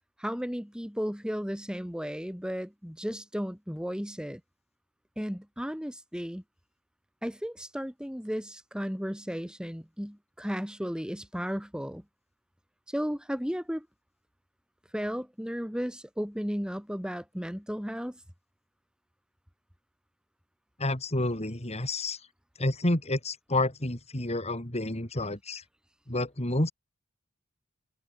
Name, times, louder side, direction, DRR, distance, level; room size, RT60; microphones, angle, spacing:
voice 1, 0.2-4.4 5.2-6.4 7.2-12.0 12.9-13.9 14.9-18.2, equal, 5° right, 3.7 m, -34 dB
voice 2, 20.8-22.2 22.6-25.6 26.1-26.7, left 1 dB, 30° left, 3.5 m, -29 dB
head